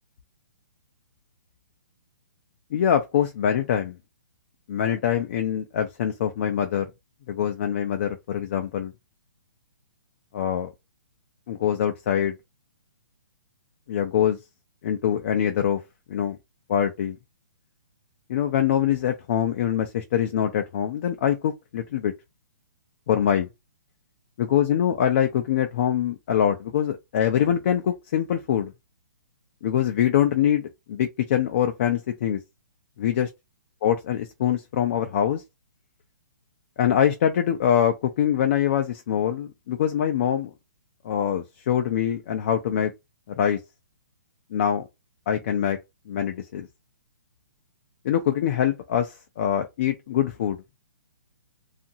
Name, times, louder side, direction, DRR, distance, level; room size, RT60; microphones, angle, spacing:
voice 1, 2.7-4.0 4.7-6.9 7.3-8.9 10.3-10.7 11.5-12.3 13.9-14.4 14.8-15.8 16.1-16.4 16.7-17.2 18.3-22.1 23.1-23.5 24.4-28.7 29.6-32.4 33.0-33.3 33.8-35.4 36.8-40.5 41.0-42.9 43.4-43.6 44.5-44.9 45.3-45.8 46.1-46.7 48.0-50.6, left 9 dB, 40° left, 0.5 m, -24 dB
2.8 x 2.4 x 2.7 m
hypercardioid pair, 165°, 10 cm